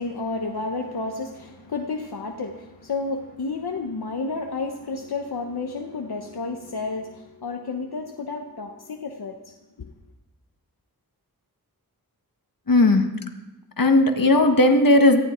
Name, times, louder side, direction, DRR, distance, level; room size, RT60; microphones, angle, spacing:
voice 1, 0.0-9.9, left 3 dB, 80° left, 3 dB, 1.2 m, -31 dB
voice 2, 12.7-13.1 13.8-15.2, left 2 dB, 60° left, 5 dB, 1.7 m, -16 dB
18.0 x 14.5 x 4.5 m, 1.0 s
wide cardioid pair, 80°, 37 cm